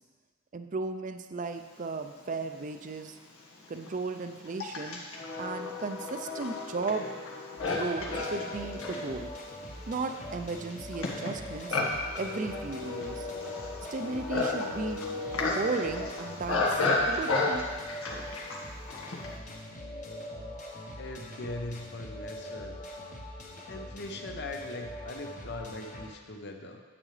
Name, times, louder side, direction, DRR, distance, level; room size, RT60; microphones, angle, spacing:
voice 1, 0.5-3.2 3.7-5.0 5.4-7.1 7.7-9.3 9.9-11.8 12.2-13.3 13.9-15.0 15.4-17.6, right 3 dB, 40° right, 7 dB, 0.5 m, -35 dB
Livestock farm animals working animals, 2.6-2.7 3.4-19.4, left 3 dB, 85° left, 1.5 m, -33 dB
sound 1, 7.6-26.1, left 1 dB, 40° left, 1.1 m, -43 dB
voice 2, 21.0-22.8 23.6-26.8, left 2 dB, 55° left, 4 dB, 0.8 m, -40 dB
10.0 x 8.7 x 3.3 m, 1.4 s
head